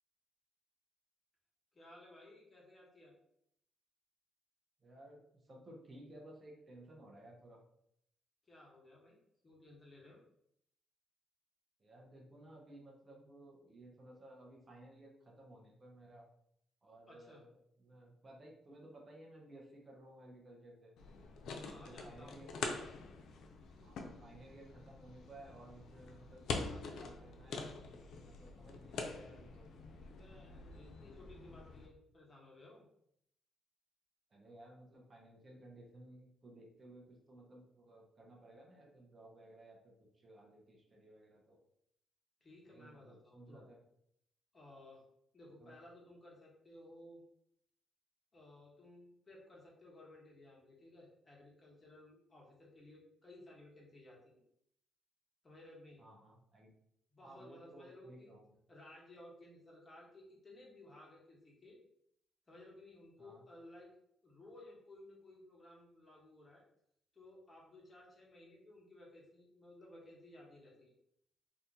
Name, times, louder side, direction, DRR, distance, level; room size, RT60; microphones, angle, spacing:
voice 1, 1.7-3.1 8.5-9.2 9.4-10.2 17.1-17.4 21.5-22.4 30.0-32.8 42.4-43.6 44.5-45.0 45.3-47.2 48.3-54.4 55.4-56.0 57.1-58.3 58.7-61.8 62.5-63.9 64.2-66.6 67.1-70.9, left 1 dB, 30° left, -3 dB, 1.2 m, -57 dB
voice 2, 4.8-7.6 11.8-16.3 16.8-20.9 21.8-22.8 23.8-29.7 34.3-41.6 42.7-43.8 45.6-45.7 56.0-56.7 57.2-58.5 63.2-63.4, right 1 dB, 35° right, -1 dB, 0.8 m, -57 dB
sound 1, 21.0-31.9, left 4 dB, 75° left, 0.5 m, -45 dB
2.8 x 2.5 x 3.6 m, 0.73 s
cardioid pair, 90°, 0 cm